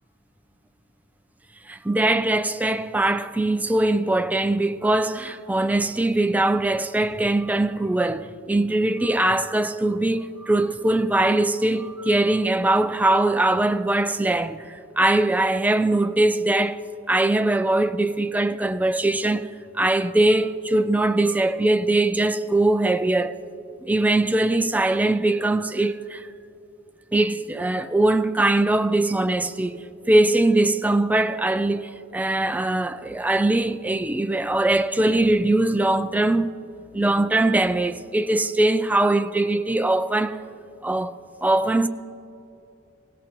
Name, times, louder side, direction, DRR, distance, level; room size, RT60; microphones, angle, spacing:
voice 1, 1.7-16.8 17.1-19.5 19.7-23.3 23.8-26.3 27.1-29.8 30.1-36.5 36.9-40.4 40.8-41.1 41.4-41.9, right 2 dB, 5° right, 0.3 m, -21 dB
18.0 x 17.5 x 3.0 m
head